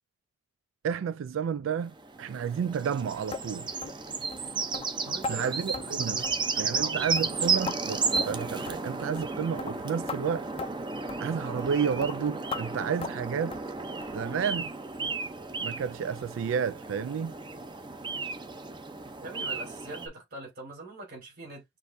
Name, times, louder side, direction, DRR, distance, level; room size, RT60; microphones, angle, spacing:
voice 1, 0.8-3.7 5.3-6.2 6.6-10.5 11.2-13.6 14.1-14.7 15.6-17.4, right 7 dB, 70° right, 0.3 m, -31 dB
sound 1, 1.9-20.1, right 4 dB, 25° right, 0.6 m, -33 dB
sound 2, 3.3-3.5 3.8-4.0 4.3-4.4 4.7-4.9 5.2-5.4 5.7-5.9 6.2-6.5 6.7-6.9 7.2-7.8 8.2-8.4 8.7-8.8 9.2-9.3 9.6-9.7 10.1-10.2 10.6-10.7 11.1-11.2 11.6-11.7 12.0-12.1 12.5-12.6 13.0-13.2 13.5-13.7 14.0-14.2 14.5-14.6 15.0-15.1 15.5-15.6, left 4 dB, 30° left, 0.4 m, -37 dB
voice 2, 5.0-7.3 19.2-21.6, right 2 dB, 50° right, 3.5 m, -43 dB
6.3 x 2.7 x 2.6 m
head